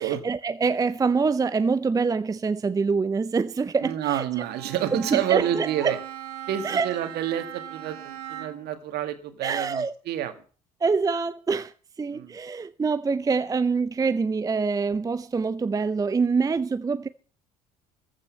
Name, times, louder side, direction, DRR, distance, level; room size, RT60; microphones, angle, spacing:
voice 1, 0.0-4.4 4.9-6.0 6.6-6.9 9.4-9.9 10.8-11.7 12.0-17.1, right 4 dB, 20° right, 0.6 m, -25 dB
voice 2, 3.8-6.0 6.5-10.3 12.1-12.4, right 11 dB, 55° right, 2.0 m, -28 dB
Bowed string instrument, 4.3-8.8, right 11 dB, 75° right, 1.5 m, -39 dB
14.5 x 6.3 x 8.3 m
figure-of-eight pair, 60°, 20 cm